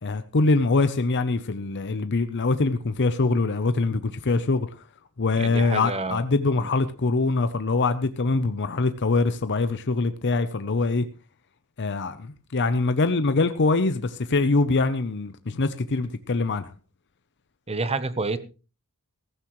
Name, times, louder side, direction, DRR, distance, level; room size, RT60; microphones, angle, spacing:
voice 1, 0.0-4.8 5.2-11.0 11.8-16.7, left 3 dB, 55° left, 0.7 m, -23 dB
voice 2, 5.4-6.2 6.6-6.7 17.7-18.4, right 3 dB, 25° right, 0.9 m, -28 dB
15.5 x 14.5 x 3.1 m
head